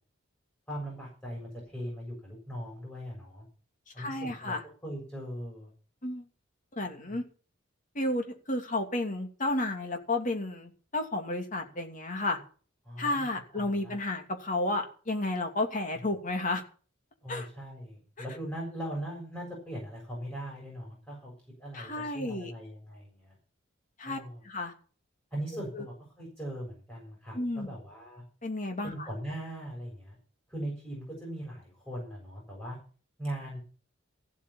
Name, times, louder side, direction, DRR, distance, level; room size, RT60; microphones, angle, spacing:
voice 1, 0.7-3.5 3.9-4.6 4.8-5.7 6.9-7.2 12.8-13.3 13.5-13.9 17.2-21.3 21.6-23.4 24.0-24.4 25.3-28.2 28.8-30.2 30.5-32.8 33.2-33.6, right 1 dB, 10° left, -3 dB, 7.2 m, -40 dB
voice 2, 4.0-4.6 6.0-6.3 6.8-7.2 7.9-12.4 13.0-16.6 17.3-17.5 21.7-22.5 24.0-24.2 24.4-24.7 25.7-25.8 27.3-27.7 28.4-29.1, left 2 dB, 40° left, 4 dB, 2.6 m, -32 dB
15.0 x 8.4 x 7.2 m, 0.40 s
head